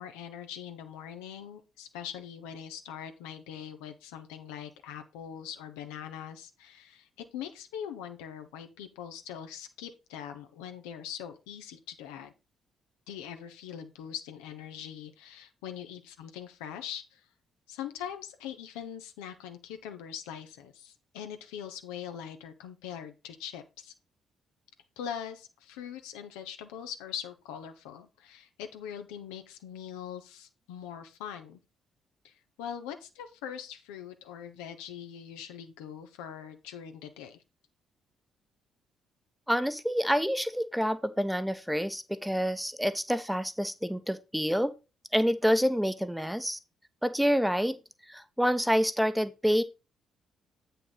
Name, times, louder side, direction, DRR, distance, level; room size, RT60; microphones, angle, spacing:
voice 1, 0.0-12.3 13.1-17.2 17.7-23.9 25.0-31.6 32.2-37.4, left 9 dB, 75° left, 0.9 m, -42 dB
voice 2, 39.5-44.7 45.1-46.6 47.0-47.8 48.1-49.6, equal, ahead, 1.0 m, -27 dB
8.4 x 5.7 x 4.0 m
figure-of-eight pair, 40°, 0 cm